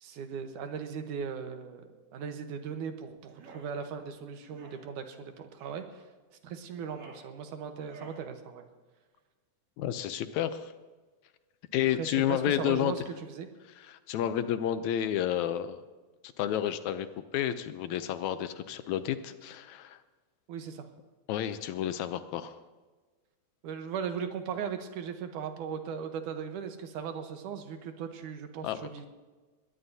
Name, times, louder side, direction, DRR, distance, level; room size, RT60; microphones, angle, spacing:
voice 1, 0.0-6.0 6.4-8.7 12.0-13.5 20.5-20.9 23.6-29.1, right 7 dB, 85° right, 6 dB, 2.7 m, -38 dB
sound 1, 3.3-3.7 4.5-4.8 5.6-5.8 6.6-7.3 7.8-8.2, right 3 dB, 65° right, 3.6 m, -52 dB
voice 2, 9.8-10.7 11.7-12.9 13.8-15.8 16.4-17.1 17.3-20.0 21.3-22.6 28.6-28.8, left 11 dB, 75° left, 11 dB, 2.0 m, -30 dB
21.0 x 18.0 x 2.8 m, 1.3 s
omnidirectional pair, 3.5 m